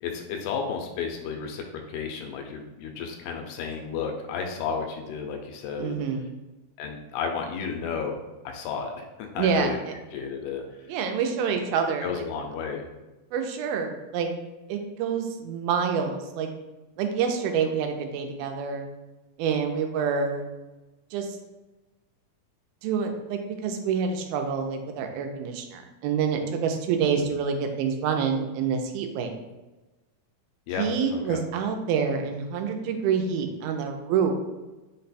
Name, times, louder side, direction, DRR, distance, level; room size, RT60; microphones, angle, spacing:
voice 1, 0.0-6.1 6.8-8.2 8.5-9.8 10.1-10.6 12.0-12.9 27.3-27.4 30.7-30.9 31.1-31.4, left 6 dB, 90° left, 3 dB, 2.5 m, -32 dB
voice 2, 5.8-6.2 9.4-9.9 10.9-12.2 13.3-14.3 14.7-16.5 17.0-18.9 19.4-20.4 21.1-21.3 22.8-29.3 30.8-34.3, right 6 dB, 80° right, 4 dB, 2.3 m, -27 dB
5.8 x 2.2 x 4.1 m, 1.1 s
omnidirectional pair, 4.3 m